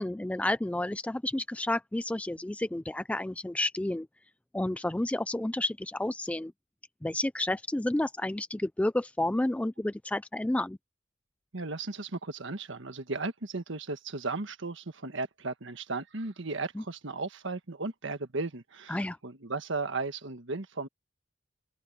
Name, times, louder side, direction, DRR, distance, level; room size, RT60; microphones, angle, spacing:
voice 1, 0.0-4.1 4.5-6.5 7.0-10.8 18.9-19.2, left 1 dB, 5° left, 0.3 m, -30 dB
voice 2, 11.5-20.9, right 3 dB, 65° right, 1.5 m, -35 dB
head